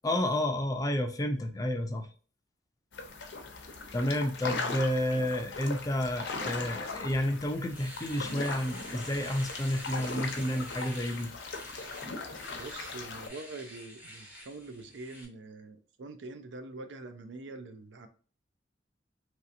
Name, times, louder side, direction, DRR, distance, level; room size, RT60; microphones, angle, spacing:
voice 1, 0.0-2.1 3.9-11.3, left 1 dB, 20° left, 6 dB, 0.4 m, -30 dB
sound 1, 2.9-13.3, left 3 dB, 75° left, 0.6 m, -39 dB
Domestic sounds home sounds, 7.7-15.3, equal, 10° right, 0.7 m, -48 dB
voice 2, 12.6-18.1, right 3 dB, 75° right, 8 dB, 0.5 m, -44 dB
3.1 x 2.7 x 2.6 m, 0.41 s
head